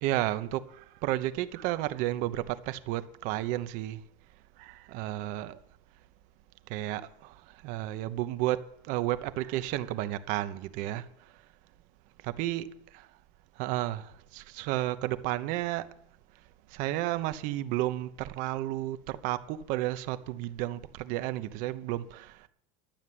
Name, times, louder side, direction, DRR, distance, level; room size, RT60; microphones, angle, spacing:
voice 1, 0.0-4.0 4.6-5.6 6.7-11.1 12.2-13.1 13.6-15.9 16.7-22.5, right 15 dB, 55° right, 0.9 m, -32 dB
12.0 x 7.3 x 9.5 m
supercardioid pair, 150°, 16 cm